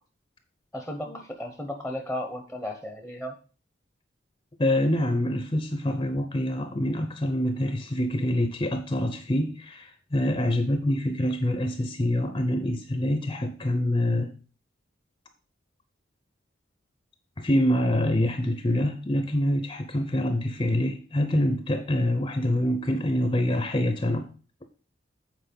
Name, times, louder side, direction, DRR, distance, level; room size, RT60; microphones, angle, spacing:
voice 1, 0.7-3.3, left 1 dB, ahead, 4 dB, 0.9 m, -34 dB
voice 2, 4.6-14.3 17.4-24.3, left 1 dB, 25° left, 7 dB, 0.7 m, -26 dB
8.1 x 4.5 x 5.2 m, 0.37 s
head